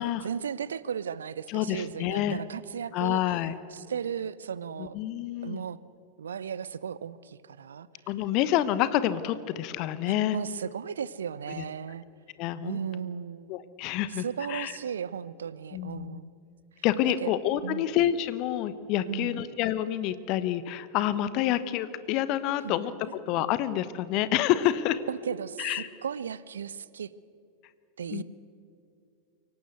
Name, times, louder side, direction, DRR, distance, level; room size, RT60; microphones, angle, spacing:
voice 1, 0.0-3.2 3.7-5.0 5.4-5.8 6.2-7.9 10.1-12.0 12.6-13.5 14.1-16.2 17.2-17.3 17.6-17.8 19.1-19.4 22.6-22.8 25.1-27.1 28.0-28.2, right 7 dB, 65° right, 19 dB, 0.6 m, -35 dB
voice 2, 1.5-2.4 2.9-3.6 4.8-5.6 8.1-10.4 11.5-11.6 12.4-12.8 13.5-14.7 15.7-16.2 16.8-22.9 23.3-25.0 25.6-25.9 28.1-28.2, left 12 dB, 40° left, 14 dB, 1.1 m, -28 dB
23.5 x 18.0 x 8.1 m, 2.5 s
figure-of-eight pair, 90°, 0 cm